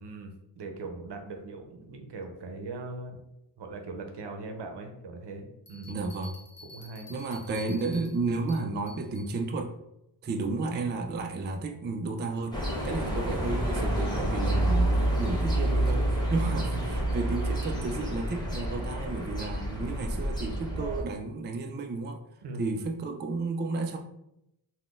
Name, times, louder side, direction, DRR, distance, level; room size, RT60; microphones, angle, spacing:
voice 1, 0.0-3.2 3.6-5.9 6.7-7.1 13.0-13.3 16.5-16.7 22.4-22.7, right 3 dB, 65° right, 4 dB, 0.7 m, -40 dB
Bell, 5.7-9.3, left 2 dB, 50° left, 0.9 m, -50 dB
voice 2, 5.9-6.4 7.1-9.7 10.2-12.6 12.8-22.2 22.6-24.0, right 3 dB, 25° right, 4 dB, 0.3 m, -32 dB
sound 1, 12.5-21.0, right 1 dB, 10° left, 1.0 m, -28 dB
3.6 x 2.3 x 2.4 m, 0.84 s
cardioid pair, 55°, 44 cm